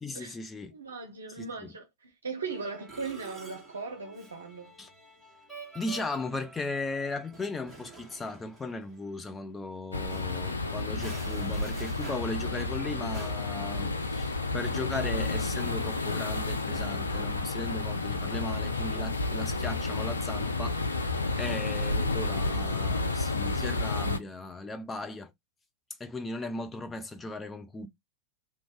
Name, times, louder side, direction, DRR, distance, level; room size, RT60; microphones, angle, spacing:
voice 1, 0.0-0.7 1.4-1.7 4.8-4.9 5.7-20.8 21.4-25.3 26.0-27.9, left 2 dB, 15° left, 0.5 m, -37 dB
voice 2, 0.7-4.7 21.3-21.6, right 4 dB, 70° right, 0.5 m, -39 dB
Musical instrument, 2.5-9.3 9.6-9.8 10.1-10.2 10.8-13.3, right 3 dB, ahead, 1.3 m, -48 dB
sound 1, 9.9-24.2, left 3 dB, 80° left, 0.4 m, -31 dB
2.4 x 2.2 x 3.8 m
figure-of-eight pair, 90°, 0 cm